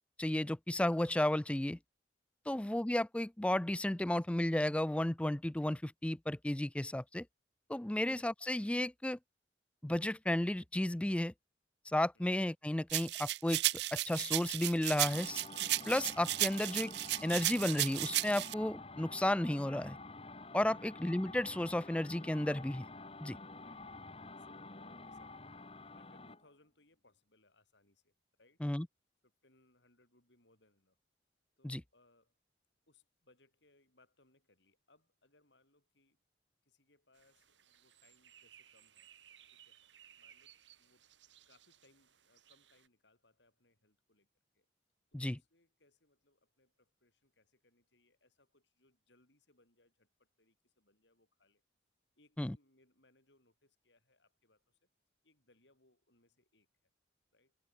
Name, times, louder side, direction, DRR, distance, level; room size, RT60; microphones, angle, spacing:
voice 1, 0.2-1.8 2.5-7.2 7.7-9.2 9.8-11.3 11.9-13.6 13.9-15.4 15.9-16.9 17.2-20.0 20.5-22.9 23.2-23.4 28.6-28.9 31.6-31.8 45.1-45.4 52.4-52.5, left 1 dB, 5° left, 0.3 m, -33 dB
voice 2, 2.4-2.8 12.1-12.3 20.7-20.9 23.6-23.9 24.4-28.6 29.2-31.0 31.6-32.4 32.9-36.2 36.6-39.8 40.2-41.0 41.5-44.3 44.5-44.7 45.1-51.6 52.2-54.9 55.2-56.7 57.3-57.6, left 2 dB, 75° left, 7.5 m, -71 dB
sound 1, 12.9-18.5, right 16 dB, 65° right, 0.5 m, -34 dB
sound 2, 15.0-26.5, left 3 dB, 30° left, 1.9 m, -50 dB
sound 3, 37.1-42.9, right 10 dB, 80° right, 5.2 m, -62 dB
head